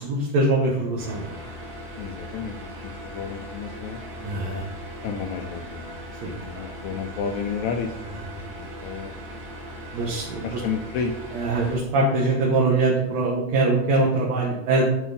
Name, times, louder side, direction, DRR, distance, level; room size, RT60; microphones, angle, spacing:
voice 1, 0.0-1.4 4.2-4.7 6.2-6.7 8.1-8.4 9.9-10.6 11.3-14.9, right 2 dB, 65° right, -3 dB, 2.3 m, -23 dB
sound 1, 1.0-11.8, equal, 50° right, 2.7 m, -39 dB
voice 2, 2.0-2.6 3.1-4.0 5.0-5.9 6.2-7.9 8.6-9.1 10.4-11.1, left 6 dB, 75° left, 4 dB, 1.8 m, -31 dB
10.0 x 5.1 x 4.0 m, 0.91 s
omnidirectional pair, 3.6 m